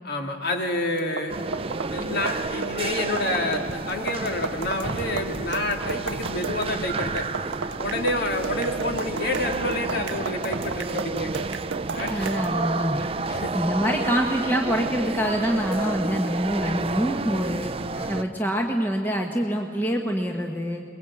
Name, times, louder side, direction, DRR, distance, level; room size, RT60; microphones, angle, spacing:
voice 1, 0.0-1.4 1.9-7.3 7.7-11.5 11.9-12.5 13.0-13.6 17.9-18.2, left 1 dB, 60° left, 3 dB, 2.4 m, -29 dB
sound 1, 1.0-12.6, right 6 dB, 90° right, 0.7 m, -34 dB
sound 2, 1.3-18.2, right 3 dB, 30° right, 0.5 m, -31 dB
voice 2, 12.1-13.0 13.5-17.7 18.1-20.8, equal, 10° left, 2 dB, 1.2 m, -25 dB
23.0 x 21.5 x 8.5 m, 2.4 s
head